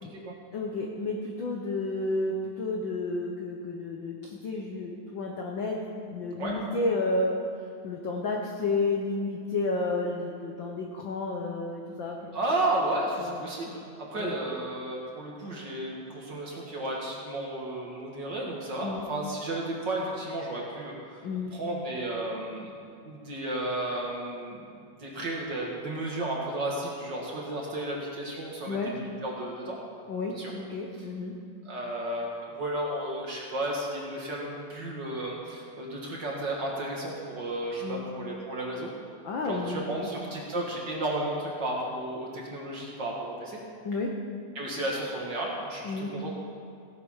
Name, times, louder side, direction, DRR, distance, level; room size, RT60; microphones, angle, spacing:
voice 1, 0.0-0.3 6.4-6.6 12.3-13.8 14.1-21.3 21.5-22.7 23.0-24.7 25.0-29.8 30.3-30.5 31.6-38.9 39.4-43.6 44.5-46.4, right 1 dB, 45° right, -3 dB, 1.8 m, -33 dB
voice 2, 0.5-7.4 7.8-12.3 13.2-13.4 14.1-14.4 18.8-19.1 21.2-21.5 28.7-28.9 30.1-31.3 37.8-38.1 39.2-40.1 43.8-44.1 45.8-46.1, left 2 dB, 70° left, 0 dB, 1.1 m, -31 dB
16.5 x 7.9 x 5.6 m, 2.4 s
omnidirectional pair, 3.5 m